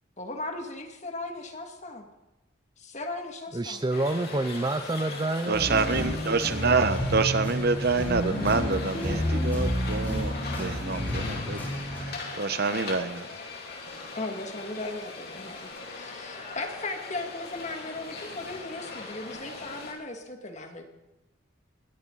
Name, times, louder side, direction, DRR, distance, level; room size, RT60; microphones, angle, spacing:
voice 1, 0.2-2.1 2.8-3.8 11.8-11.9 14.2-20.8, left 2 dB, 35° left, 4 dB, 2.2 m, -37 dB
voice 2, 3.5-5.9, right 2 dB, 20° right, 9 dB, 0.6 m, -28 dB
sound 1, 3.9-19.9, left 3 dB, 55° left, 4.0 m, -40 dB
sound 2, 5.5-12.1, equal, 10° left, 4.7 m, -30 dB
voice 3, 5.5-11.6 12.4-13.3, right 4 dB, 55° right, 11 dB, 1.0 m, -27 dB
21.5 x 16.5 x 4.1 m, 1.0 s
head